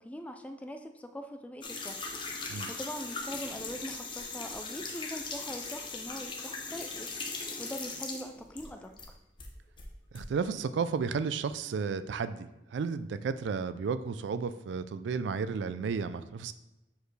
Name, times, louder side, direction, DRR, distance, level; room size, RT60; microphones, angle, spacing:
voice 1, 0.0-2.1 2.7-7.1 7.6-8.9, equal, 10° left, 7 dB, 0.3 m, -42 dB
sound 1, 1.6-9.1 9.4-10.2, left 4 dB, 25° left, 0.7 m, -39 dB
voice 2, 10.1-16.5, right 5 dB, 85° right, 13 dB, 0.3 m, -33 dB
6.9 x 4.4 x 3.2 m, 0.97 s
head